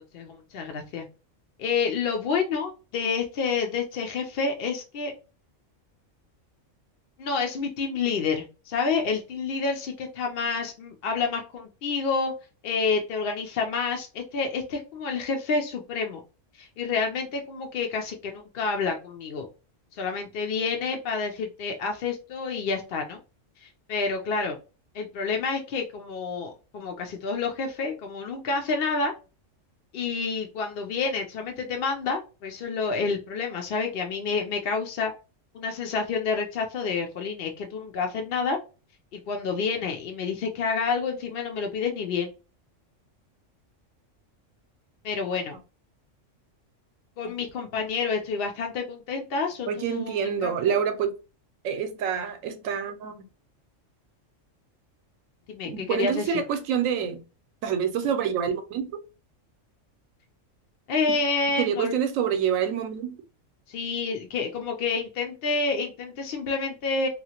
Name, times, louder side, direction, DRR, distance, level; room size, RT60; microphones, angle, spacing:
voice 1, 0.1-1.0 1.6-5.1 7.2-12.3 12.6-16.2 16.6-19.5 20.0-23.2 23.6-24.6 24.9-29.1 29.9-35.1 35.5-38.6 39.1-42.3 45.0-45.6 47.2-50.8 55.5-56.4 60.9-61.9 63.7-67.1, left 4 dB, 60° left, 0.6 m, -29 dB
voice 2, 49.7-51.1 51.6-53.1 55.6-57.2 57.6-59.0 61.1-61.2 61.6-63.2, right 8 dB, 85° right, 1.0 m, -27 dB
2.8 x 2.4 x 2.8 m
omnidirectional pair, 1.3 m